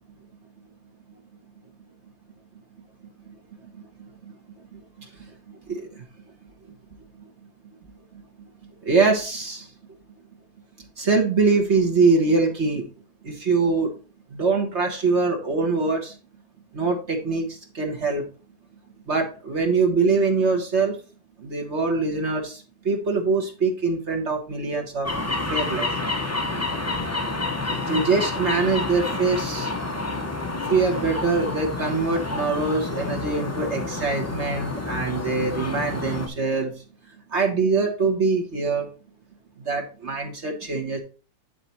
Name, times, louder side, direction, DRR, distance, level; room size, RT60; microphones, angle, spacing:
voice 1, 8.8-9.7 11.0-12.8 13.2-13.9 14.3-16.1 16.7-18.2 19.1-21.0 21.4-25.1 25.5-25.9 27.9-29.7 30.7-36.7 37.3-38.9 39.6-41.0, right 4 dB, 50° right, 2 dB, 1.6 m, -23 dB
sound 1, 25.0-36.3, left 2 dB, 15° left, 0.6 m, -29 dB
9.8 x 4.1 x 4.4 m, 0.36 s
omnidirectional pair, 1.6 m